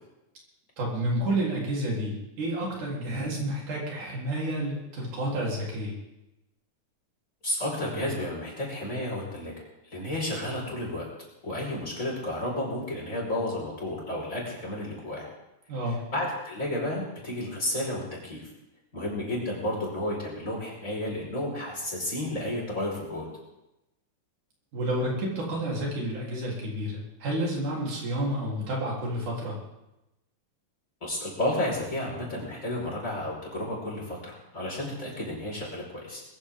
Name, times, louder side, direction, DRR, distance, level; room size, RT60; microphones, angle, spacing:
voice 1, 0.8-6.0 15.7-16.0 24.7-29.6, right 1 dB, 80° right, -3 dB, 5.2 m, -30 dB
voice 2, 7.4-11.1 11.4-15.3 16.1-18.5 18.9-23.3 31.0-36.2, left 1 dB, 25° left, -4 dB, 5.3 m, -32 dB
21.5 x 15.0 x 3.7 m, 0.93 s
omnidirectional pair, 3.5 m